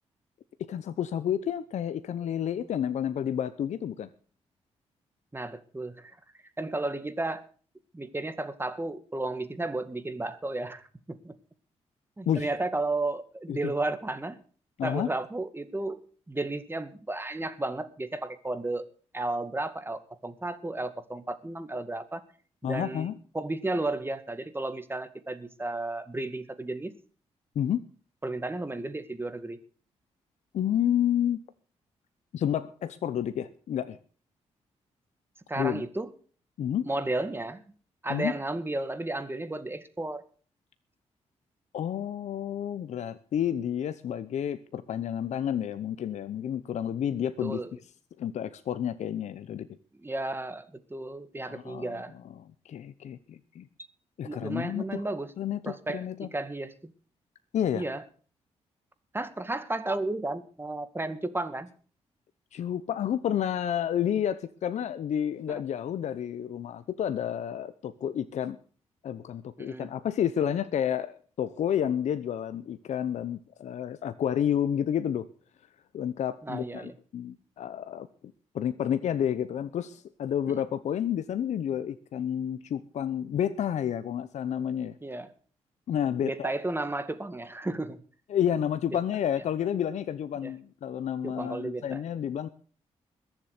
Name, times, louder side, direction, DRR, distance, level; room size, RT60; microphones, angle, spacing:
voice 1, 0.7-4.1 12.3-12.5 13.5-13.7 14.8-15.1 22.6-23.1 27.5-27.8 30.5-31.4 32.3-34.0 35.6-35.8 36.6-36.9 38.1-38.3 41.7-47.6 48.2-49.7 51.5-52.0 52.4-53.7 54.2-55.0 55.4-56.3 57.5-57.9 62.5-68.6 69.0-75.3 75.9-78.1 78.5-84.9 85.9-86.5 88.3-92.5, left 9 dB, 75° left, 13 dB, 0.8 m, -30 dB
voice 2, 5.3-6.1 6.6-7.4 7.9-11.3 12.2-14.4 14.8-16.0 16.3-18.9 19.1-22.2 22.6-26.9 28.2-29.6 35.5-36.1 36.8-37.6 38.0-40.2 47.4-47.7 50.0-52.1 54.2-55.3 55.7-56.1 56.3-56.7 57.7-58.0 59.1-61.7 65.5-65.6 69.6-69.9 76.4-76.9 80.5-80.6 85.0-85.3 86.2-88.0 90.4-90.5 91.2-92.0, right 2 dB, 20° right, 11 dB, 2.1 m, -33 dB
21.0 x 7.4 x 6.6 m, 0.42 s
cardioid pair, 60°, 12 cm